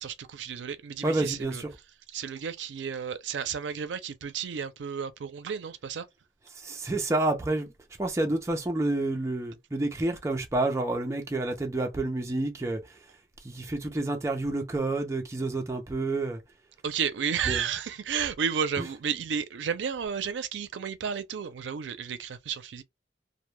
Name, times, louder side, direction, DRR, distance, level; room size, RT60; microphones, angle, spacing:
voice 1, 0.0-1.6 2.1-6.1 16.8-22.8, right 7 dB, 85° right, 0.4 m, -32 dB
voice 2, 1.0-1.7 6.5-7.7 8.0-13.0 13.4-16.4 17.5-17.6 18.8-18.9, right 2 dB, 15° right, 0.3 m, -29 dB
2.1 x 2.0 x 3.0 m
head